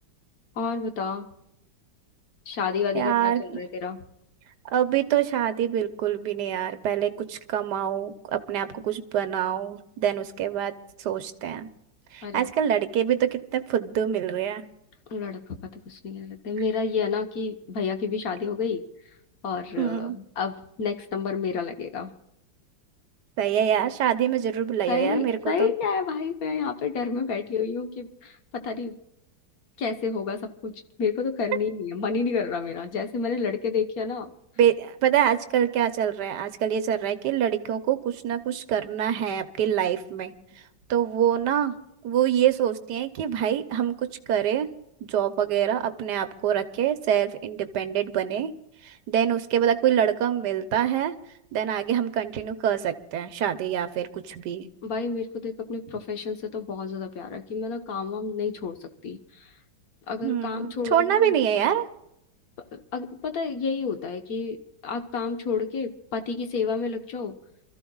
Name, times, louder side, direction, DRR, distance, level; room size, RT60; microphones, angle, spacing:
voice 1, 0.6-1.3 2.5-4.0 12.2-12.5 15.1-15.4 15.7-18.8 19.4-22.1 24.9-29.0 29.8-34.3 54.8-59.5 60.1-61.4 62.7-64.6 64.8-67.3, left 5 dB, 55° left, 6 dB, 1.5 m, -30 dB
voice 2, 2.9-3.6 4.7-10.7 11.0-11.7 12.1-14.7 19.8-20.2 23.4-25.7 34.6-40.3 40.9-41.7 42.0-44.7 45.0-48.5 48.8-51.1 51.5-54.7 60.2-61.8, right 9 dB, 65° right, 9 dB, 1.4 m, -25 dB
28.0 x 14.0 x 2.4 m, 0.81 s
omnidirectional pair, 2.1 m